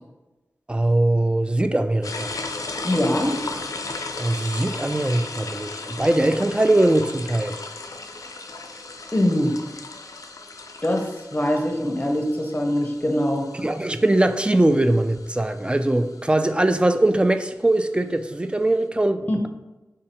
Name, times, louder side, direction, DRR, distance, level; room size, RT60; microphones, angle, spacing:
voice 1, 0.7-2.3 4.2-7.6 13.5-19.5, right 1 dB, 15° right, 0.3 m, -21 dB
sound 1, 2.0-16.4, left 3 dB, 65° left, 0.4 m, -36 dB
voice 2, 2.8-3.4 9.1-9.6 10.8-11.1 11.3-13.5 19.3-19.4, left 1 dB, 25° left, 0.7 m, -22 dB
3.8 x 2.6 x 4.2 m
cardioid pair, 45°, 6 cm